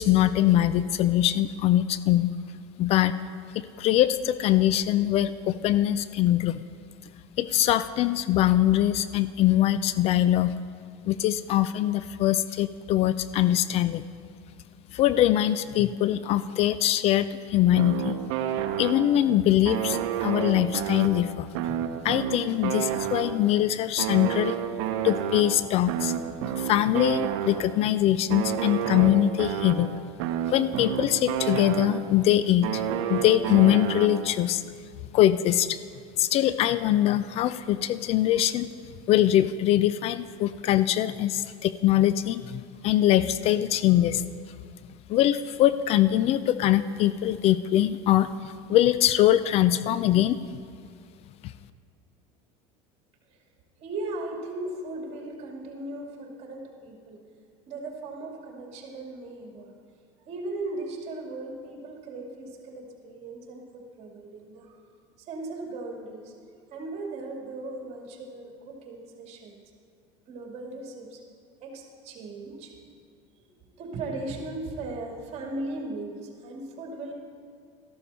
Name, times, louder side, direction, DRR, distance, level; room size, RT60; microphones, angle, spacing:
voice 1, 0.0-2.3 2.8-3.1 3.5-6.6 7.4-10.5 11.1-14.0 14.9-18.2 18.8-21.5 22.0-24.6 25.0-26.1 26.5-29.9 30.5-32.8 33.1-34.6 35.1-35.8 36.2-38.7 39.1-44.2 45.1-50.4 51.4-51.5, left 13 dB, 45° left, 14 dB, 0.4 m, -23 dB
sound 1, 17.8-19.3 19.6-23.6 24.0-27.9 28.3-32.2 32.6-34.5, right 9 dB, 75° right, 0.8 m, -30 dB
voice 2, 53.8-57.2 57.7-59.7 60.2-64.8 65.2-66.3 66.7-69.6 70.3-71.2 71.6-72.8 73.4-77.1, right 2 dB, 45° right, 1 dB, 2.4 m, -37 dB
13.5 x 12.0 x 4.3 m, 2.2 s
supercardioid pair, 135°, 15 cm